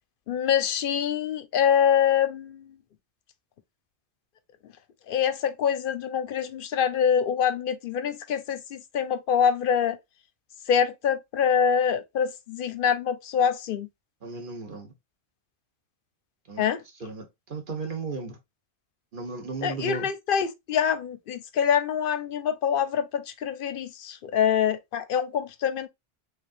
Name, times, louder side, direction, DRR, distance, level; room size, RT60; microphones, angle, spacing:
voice 1, 0.3-2.8 5.1-10.0 10.7-13.9 16.6-16.8 19.6-25.9, left 8 dB, 60° left, 0.7 m, -25 dB
voice 2, 14.2-14.9 16.5-16.7 17.0-18.4 19.1-20.1, right 4 dB, 50° right, 1.1 m, -35 dB
3.5 x 3.4 x 2.5 m
omnidirectional pair, 1.1 m